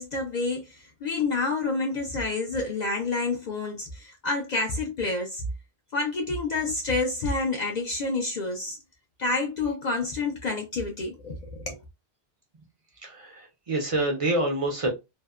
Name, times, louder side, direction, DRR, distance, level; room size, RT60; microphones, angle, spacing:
voice 1, 0.0-5.4 5.9-8.8 9.2-11.4 11.7-11.8, left 3 dB, 70° left, 0.4 m, -28 dB
voice 2, 13.0-14.9, right 1 dB, 50° right, 0.4 m, -27 dB
2.6 x 2.1 x 2.3 m
omnidirectional pair, 1.2 m